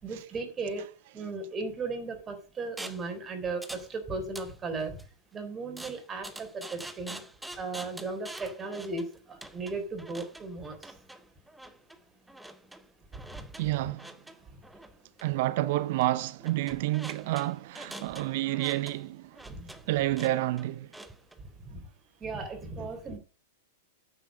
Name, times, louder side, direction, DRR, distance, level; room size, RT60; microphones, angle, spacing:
voice 1, 0.0-0.9 1.1-4.9 5.3-7.2 7.6-10.9 13.1-13.2 19.5-19.7 21.7-21.9 22.2-23.2, right 3 dB, 20° right, 3.5 m, -36 dB
sound 1, 2.8-3.1 3.6-3.9 4.2-5.0 5.8-21.4, right 1 dB, 5° right, 1.0 m, -46 dB
voice 2, 13.6-14.1 15.2-19.5 19.9-20.9, right 17 dB, 50° right, 0.6 m, -29 dB
9.4 x 8.1 x 5.4 m
figure-of-eight pair, 100°, 0 cm